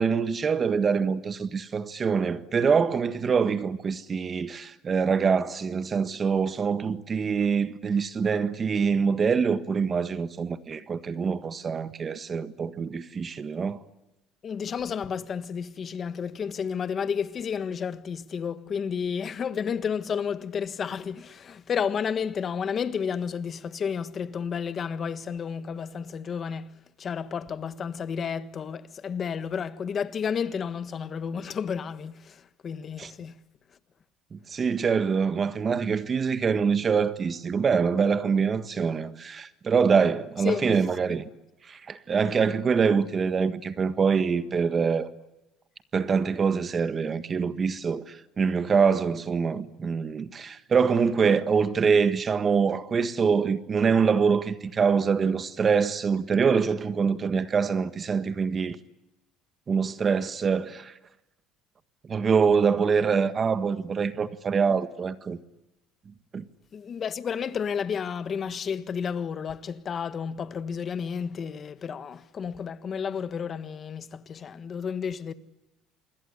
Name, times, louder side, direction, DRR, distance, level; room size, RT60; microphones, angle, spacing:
voice 1, 0.0-13.8 33.0-33.1 34.3-41.3 41.7-45.1 45.9-58.8 59.7-60.9 62.1-65.4 66.3-66.4, right 6 dB, 30° right, 1.5 m, -25 dB
voice 2, 14.4-33.4 40.4-40.8 66.7-75.3, left 7 dB, 35° left, 1.5 m, -31 dB
27.5 x 21.5 x 9.8 m
cardioid pair, 120°, 0 cm